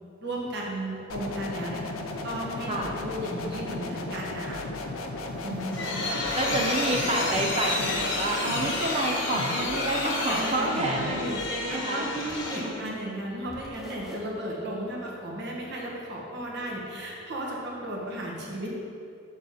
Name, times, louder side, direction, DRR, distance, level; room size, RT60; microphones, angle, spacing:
voice 1, 0.2-1.9 2.2-4.6 10.3-11.3 11.7-18.7, right 1 dB, 50° right, -3 dB, 1.5 m, -35 dB
sound 1, 1.1-11.4, left 2 dB, 80° left, 0.7 m, -35 dB
sound 2, 5.3-12.9, left 2 dB, 55° left, 1.2 m, -31 dB
voice 2, 5.4-6.1 6.3-12.1 12.6-13.1, right 1 dB, 30° right, 0 dB, 0.6 m, -29 dB
sound 3, 5.7-7.5 8.0-9.1 9.6-10.8 11.5-12.7 13.4-14.2, equal, ahead, 0.9 m, -45 dB
7.2 x 7.0 x 4.2 m, 2.5 s
head